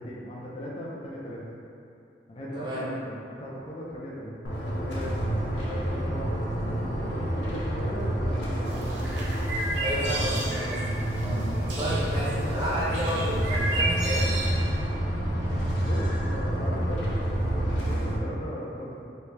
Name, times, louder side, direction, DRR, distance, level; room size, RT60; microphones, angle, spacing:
voice 1, 0.0-1.4 2.3-4.3 4.6-6.3 6.7-9.1 11.6-11.9 12.2-12.7 13.1-13.2 15.8-19.1, equal, 35° left, -6 dB, 0.5 m, -38 dB
voice 2, 2.5-2.9 9.8-10.9 11.2-11.5 11.8-14.3, equal, 25° right, -8 dB, 0.8 m, -31 dB
sound 1, 4.4-18.2, right 1 dB, 85° left, 0.7 m, -28 dB
sound 2, 8.6-14.5, right 1 dB, 75° right, 0.6 m, -33 dB
3.2 x 2.7 x 3.2 m, 2.6 s
head